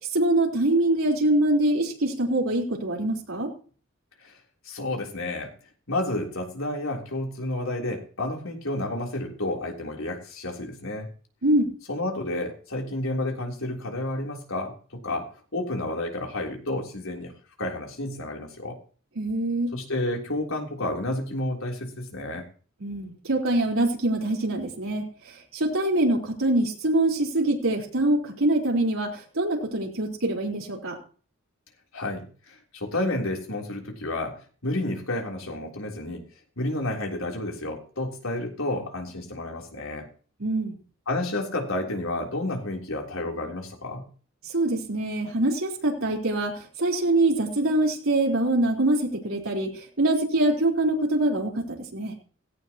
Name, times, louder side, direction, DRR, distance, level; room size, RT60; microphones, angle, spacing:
voice 1, 0.1-3.5 11.4-11.7 19.2-19.7 22.8-31.0 40.4-40.8 44.4-52.1, right 1 dB, 80° right, -2 dB, 4.1 m, -24 dB
voice 2, 4.6-5.5 5.9-11.1 11.9-17.3 17.6-18.8 19.7-22.5 31.9-36.2 36.6-40.1 41.1-44.1, left 1 dB, 75° left, 1 dB, 3.6 m, -31 dB
17.0 x 16.5 x 3.0 m, 0.41 s
head